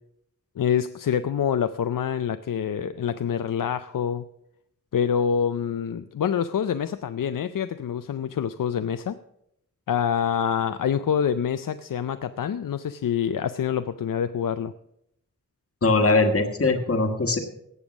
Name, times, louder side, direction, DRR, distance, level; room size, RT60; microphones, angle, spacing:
voice 1, 0.6-4.2 4.9-9.2 9.9-14.7, left 8 dB, 85° left, 11 dB, 0.5 m, -26 dB
voice 2, 15.8-17.4, left 3 dB, 45° left, 5 dB, 1.4 m, -21 dB
18.0 x 7.1 x 6.1 m, 0.78 s
wide cardioid pair, 95°, 32 cm